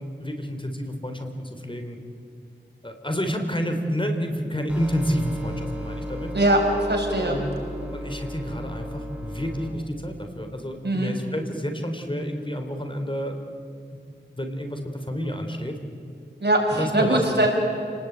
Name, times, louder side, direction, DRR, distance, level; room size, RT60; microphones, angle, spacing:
voice 1, 0.0-2.0 2.8-6.3 7.2-7.5 7.9-13.4 14.4-15.8 16.8-17.5, equal, 25° left, 5 dB, 3.2 m, -29 dB
sound 1, 4.7-9.7, equal, 5° right, 6.7 m, -35 dB
voice 2, 6.3-7.4 10.8-11.1 16.4-17.5, right 1 dB, 65° right, 1 dB, 5.9 m, -21 dB
30.0 x 19.5 x 9.2 m, 2.5 s
wide cardioid pair, 55°, 19 cm